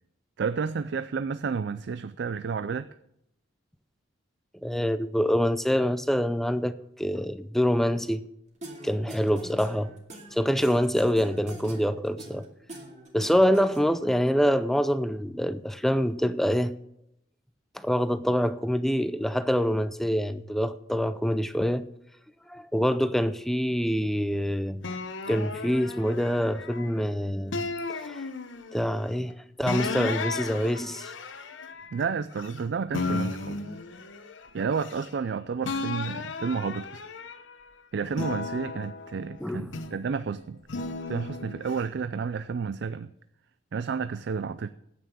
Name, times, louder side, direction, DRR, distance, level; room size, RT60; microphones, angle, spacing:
voice 1, 0.4-2.9 31.9-33.6 34.5-37.0 37.9-40.6 41.1-43.1 43.7-44.7, right 5 dB, 65° right, 0.4 m, -31 dB
voice 2, 4.6-8.2 8.8-9.9 10.3-12.4 13.1-16.8 17.7-21.9 22.5-24.8 25.3-27.6 27.9-28.2 28.7-31.1 39.4-39.7, equal, ahead, 0.4 m, -26 dB
sound 1, 8.6-14.2, right 1 dB, 40° right, 2.4 m, -44 dB
sound 2, 24.8-27.0 27.5-28.9 29.7-32.6 32.9-35.3 35.6-37.6 38.1-40.1 40.7-41.8, left 3 dB, 80° left, 0.9 m, -35 dB
9.4 x 8.7 x 6.8 m
head